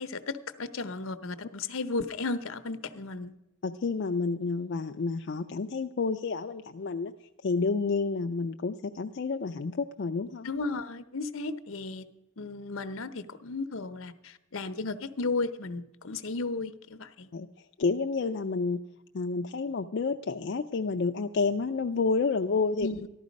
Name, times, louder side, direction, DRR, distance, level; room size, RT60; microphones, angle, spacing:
voice 1, 0.0-3.3 10.4-12.1 12.4-17.3 22.8-23.1, left 3 dB, 75° left, 11 dB, 0.8 m, -34 dB
voice 2, 3.6-7.1 7.4-10.5 17.3-18.8 19.1-22.9, left 4 dB, 55° left, 6 dB, 0.4 m, -30 dB
14.0 x 12.0 x 5.2 m, 0.88 s
head